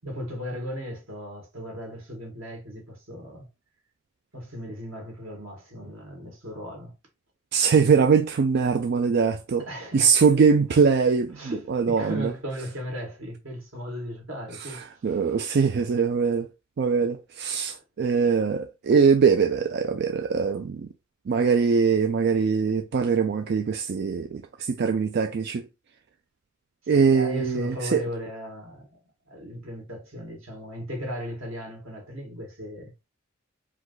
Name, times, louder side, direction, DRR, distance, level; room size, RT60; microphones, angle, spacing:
voice 1, 0.0-3.5 4.3-6.9 9.7-10.2 11.3-15.2 18.9-19.0 26.8-29.0 29.3-33.1, equal, 85° right, 2.1 m, -36 dB
voice 2, 7.5-9.7 9.9-12.3 15.0-16.5 16.8-20.9 21.3-25.6 26.9-28.0, right 5 dB, 55° right, 0.4 m, -22 dB
4.9 x 2.3 x 3.9 m
head